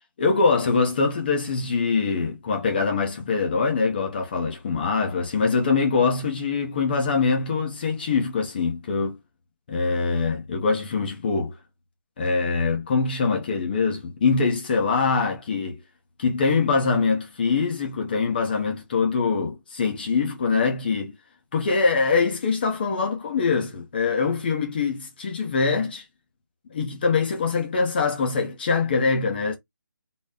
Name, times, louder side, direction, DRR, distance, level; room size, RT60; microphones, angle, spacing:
voice 1, 0.2-9.2 9.7-11.6 12.2-15.8 16.2-21.2 21.5-26.0 26.7-29.6, left 4 dB, 30° left, 0.8 m, -23 dB
3.9 x 2.1 x 3.5 m
figure-of-eight pair, 165°, 11 cm